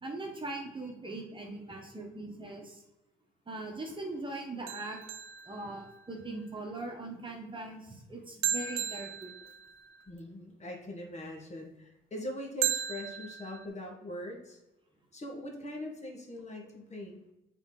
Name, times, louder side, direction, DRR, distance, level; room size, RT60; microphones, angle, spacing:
voice 1, 0.0-2.8 3.5-5.0 5.4-9.3, right 2 dB, 25° right, 1 dB, 1.3 m, -40 dB
sound 1, 4.7-6.2 8.4-10.0 12.6-13.7, right 10 dB, 90° right, 0.5 m, -35 dB
voice 2, 10.1-14.6 15.1-17.3, left 1 dB, 35° left, 1 dB, 1.5 m, -42 dB
7.0 x 4.1 x 3.9 m, 0.93 s
cardioid pair, 90°, 20 cm